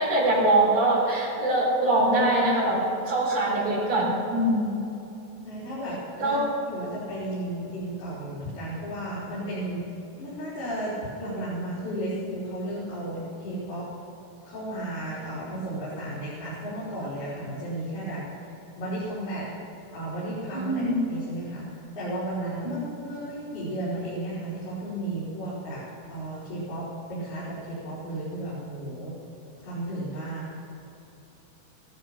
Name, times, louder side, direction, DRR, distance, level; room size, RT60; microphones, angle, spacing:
voice 1, 0.0-4.8 6.2-6.5 20.5-20.9 22.6-22.7, right 1 dB, 40° right, -4 dB, 5.0 m, -23 dB
voice 2, 5.4-6.4 6.7-9.9 10.2-13.9 14.4-18.2 18.8-19.5 19.9-20.8 21.1-21.7 22.0-25.8 26.1-29.1 29.6-30.5, right 1 dB, 75° left, -10 dB, 5.8 m, -33 dB
16.5 x 13.0 x 5.8 m, 2.9 s
omnidirectional pair, 4.6 m